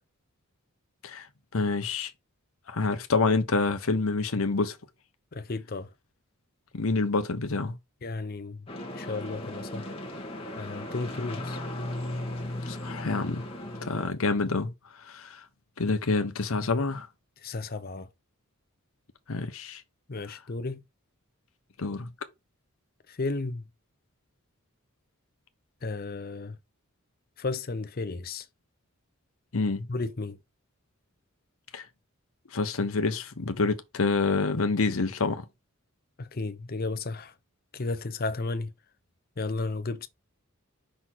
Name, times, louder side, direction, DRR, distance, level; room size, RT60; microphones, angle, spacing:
voice 1, 1.5-2.1 2.7-4.8 6.7-7.7 12.7-13.4 13.8-14.7 15.0-15.4 15.8-17.1 19.3-19.8 21.8-22.1 29.5-29.9 31.7-31.8 32.5-35.4, left 3 dB, 70° left, 0.9 m, -27 dB
voice 2, 5.3-5.9 8.0-8.7 8.9-9.9 10.6-11.6 17.4-18.1 20.1-20.8 23.1-23.7 25.8-26.6 27.4-28.5 29.9-30.4 36.2-37.3 37.7-38.7 39.4-40.1, left 3 dB, 45° left, 0.6 m, -33 dB
sound 1, 8.7-14.1, left 1 dB, 25° left, 1.5 m, -36 dB
5.6 x 4.0 x 4.5 m
head